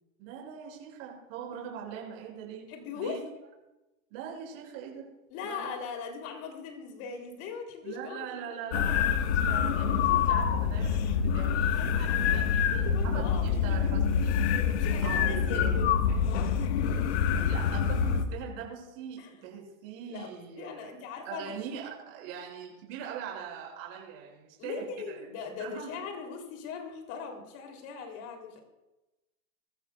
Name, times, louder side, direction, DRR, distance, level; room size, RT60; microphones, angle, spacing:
voice 1, 0.2-2.7 2.9-3.3 4.1-5.1 5.4-5.7 7.8-14.6 15.0-15.8 17.3-25.2 25.6-26.0, right 8 dB, 45° right, -1 dB, 6.0 m, -42 dB
voice 2, 2.7-3.2 5.3-8.4 11.7-12.2 12.6-13.9 14.7-15.9 16.2-16.5 19.2-19.3 20.1-21.6 24.6-28.6, left 6 dB, 35° left, 4 dB, 3.1 m, -40 dB
sound 1, 8.7-18.3, left 7 dB, 55° left, 1.4 m, -26 dB
23.5 x 13.5 x 2.3 m, 1.0 s
hypercardioid pair, 140°, 40 cm